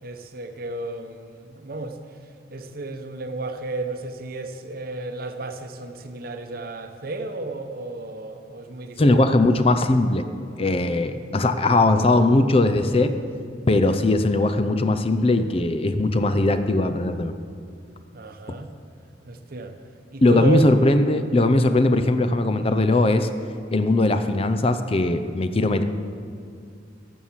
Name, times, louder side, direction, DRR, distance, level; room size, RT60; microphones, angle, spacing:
voice 1, 0.0-2.0 2.5-9.4 18.1-18.7 19.2-19.8 20.1-20.7 21.4-21.6, right 2 dB, 55° right, 7 dB, 0.9 m, -32 dB
voice 2, 9.0-10.2 10.6-13.1 13.7-17.3 20.2-23.3 23.7-25.8, left 2 dB, 30° left, 9 dB, 0.5 m, -19 dB
12.5 x 7.3 x 7.3 m, 2.3 s
head